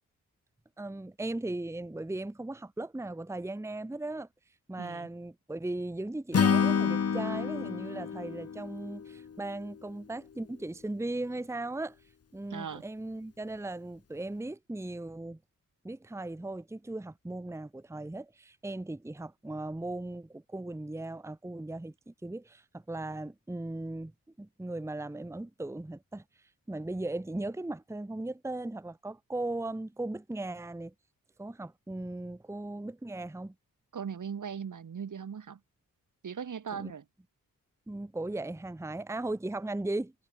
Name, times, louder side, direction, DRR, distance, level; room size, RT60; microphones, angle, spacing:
voice 1, 0.8-4.3 4.7-12.0 12.3-15.4 15.8-24.1 24.4-26.2 26.7-30.9 31.4-33.5 36.8-36.9 37.9-40.1, right 2 dB, 10° right, 0.9 m, -37 dB
voice 2, 4.7-5.1 12.5-12.8 33.9-35.6 36.2-37.0, right 7 dB, 60° right, 1.5 m, -39 dB
Acoustic guitar / Strum, 6.3-9.6, left 6 dB, 45° left, 0.9 m, -28 dB
cardioid pair, 45°, 35 cm